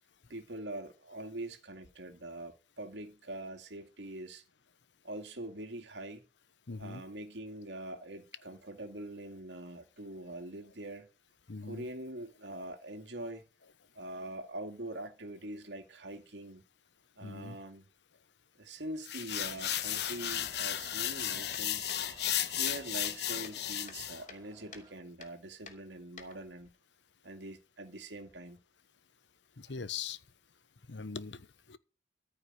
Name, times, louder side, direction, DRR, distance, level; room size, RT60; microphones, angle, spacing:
voice 1, 0.3-4.4 5.0-6.2 6.8-11.1 11.6-13.4 13.9-16.6 17.2-17.8 18.6-21.9 22.5-26.7 27.2-28.6, right 1 dB, 85° right, 2.4 m, -44 dB
voice 2, 6.7-7.0 11.5-11.9 17.2-17.6 29.6-30.2 30.9-31.8, left 5 dB, 90° left, 1.0 m, -41 dB
sound 1, 19.1-24.2, left 11 dB, 65° left, 1.1 m, -34 dB
sound 2, 19.9-24.9, right 2 dB, 25° right, 3.2 m, -56 dB
sound 3, 21.2-23.2 23.4-24.4 24.7-24.9 25.2-25.3 25.7-26.7, left 5 dB, 45° left, 2.8 m, -51 dB
14.0 x 5.6 x 9.6 m
head